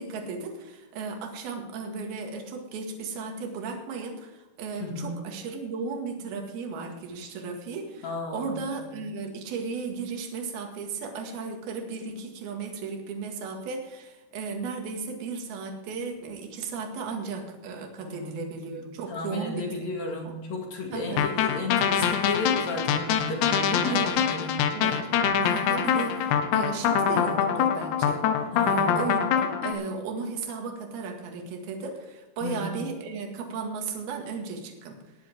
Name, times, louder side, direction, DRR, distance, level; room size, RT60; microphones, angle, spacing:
voice 1, 0.0-19.9 20.2-20.4 20.9-21.3 23.9-24.2 24.7-35.0, right 4 dB, 60° right, 2 dB, 3.3 m, -35 dB
voice 2, 4.8-5.2 8.0-8.5 8.8-8.9 18.0-18.5 19.1-24.7 28.5-29.0 32.4-32.8, left 3 dB, 45° left, 1 dB, 2.6 m, -34 dB
sound 1, 21.2-29.7, left 8 dB, 75° left, 2.9 m, -24 dB
19.0 x 10.5 x 3.5 m, 1.1 s
omnidirectional pair, 5.7 m